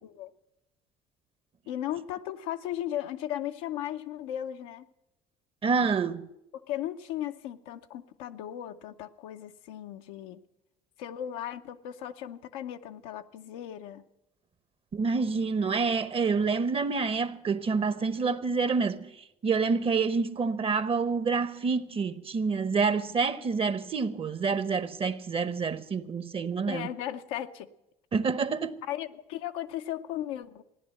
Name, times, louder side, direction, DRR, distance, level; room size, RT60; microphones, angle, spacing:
voice 1, 1.7-4.9 6.5-10.4 11.0-14.0 26.7-27.7 28.9-30.6, left 11 dB, 90° left, 0.7 m, -36 dB
voice 2, 5.6-6.3 14.9-19.1 19.4-26.9 28.1-28.8, right 5 dB, 35° right, 0.9 m, -27 dB
15.5 x 10.5 x 7.6 m
supercardioid pair, 80°, 16 cm